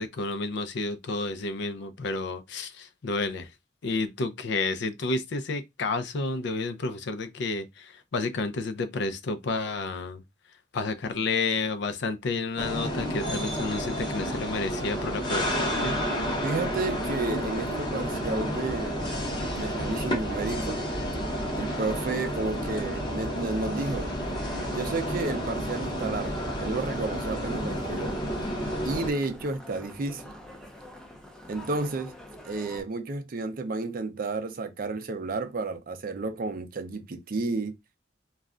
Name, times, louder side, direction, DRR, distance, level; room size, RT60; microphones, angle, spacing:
voice 1, 0.0-3.5 3.8-10.2 10.7-16.0, left 3 dB, 65° left, 0.4 m, -30 dB
sound 1, 12.6-29.1, equal, 25° left, 0.8 m, -30 dB
voice 2, 16.4-19.0 19.6-20.8 21.6-24.1 24.7-28.2 28.8-30.3 31.5-32.1 32.4-37.7, right 3 dB, 50° right, 0.5 m, -32 dB
sound 2, 23.5-32.8, left 1 dB, 5° left, 0.4 m, -46 dB
2.4 x 2.1 x 3.6 m
head